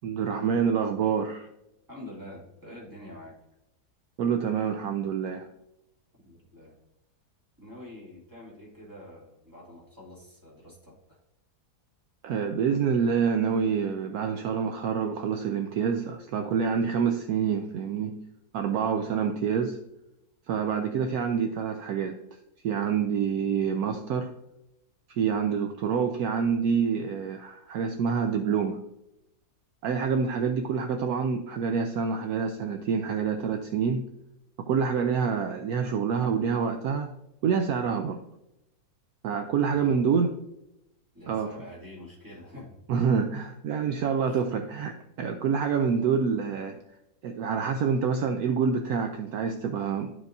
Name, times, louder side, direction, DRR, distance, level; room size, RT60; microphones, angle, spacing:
voice 1, 0.0-1.5 4.2-5.5 12.2-18.2 18.5-19.8 20.5-22.2 22.6-24.3 25.1-28.8 29.8-34.1 34.6-37.1 37.4-38.2 39.2-40.3 41.3-41.6 42.9-46.8 47.2-50.1, right 6 dB, 70° right, 6 dB, 1.0 m, -27 dB
voice 2, 1.9-3.4 6.2-6.7 7.6-11.2 39.6-40.2 41.1-42.8 44.3-44.4, left 1 dB, 10° right, -6 dB, 2.6 m, -46 dB
12.0 x 4.8 x 2.6 m, 0.86 s
omnidirectional pair, 1.7 m